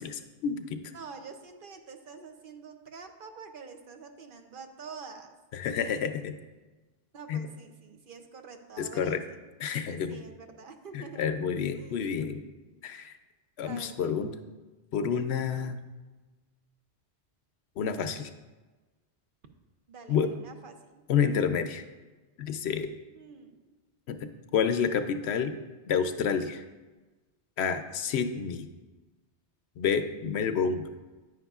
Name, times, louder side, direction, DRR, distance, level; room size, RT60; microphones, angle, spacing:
voice 1, 0.0-0.8 5.5-6.3 7.3-7.5 8.8-9.2 9.6-10.2 10.9-12.4 12.8-13.1 13.6-14.3 14.9-15.8 17.8-18.3 20.1-20.3 21.1-21.8 22.4-22.9 24.1-25.5 25.9-26.6 27.6-28.7 29.8-30.9, left 7 dB, 70° left, 9 dB, 0.8 m, -29 dB
voice 2, 0.9-5.3 7.1-9.4 9.9-11.3 11.7-12.1 13.6-14.3 19.9-20.9 23.1-23.8 27.9-28.0, right 5 dB, 55° right, 5 dB, 0.8 m, -47 dB
9.4 x 9.4 x 2.4 m, 1.2 s
omnidirectional pair, 1.2 m